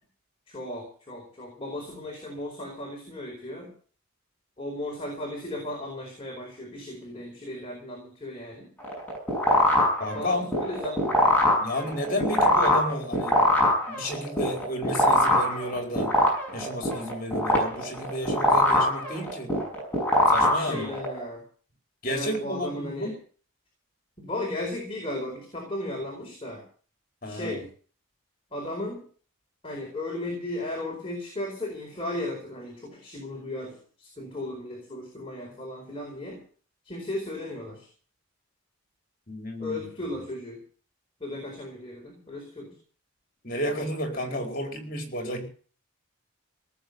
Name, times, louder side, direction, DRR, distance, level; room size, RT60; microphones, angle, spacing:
voice 1, 0.5-3.7 4.6-8.7 10.1-11.0 20.5-21.4 22.1-23.1 24.2-26.6 27.2-27.6 28.5-29.0 29.6-36.4 36.8-37.9 39.6-40.6 41.2-42.7, left 1 dB, 25° left, 0 dB, 4.6 m, -35 dB
sound 1, 8.8-21.2, left 1 dB, 10° left, 6.2 m, -23 dB
voice 2, 10.0-10.4 11.6-13.4 13.9-16.1 16.5-19.5 20.3-20.9 22.0-23.1 27.2-27.6 39.3-39.9 43.4-45.5, equal, 40° left, 3 dB, 4.5 m, -32 dB
18.0 x 7.8 x 8.1 m, 0.43 s
head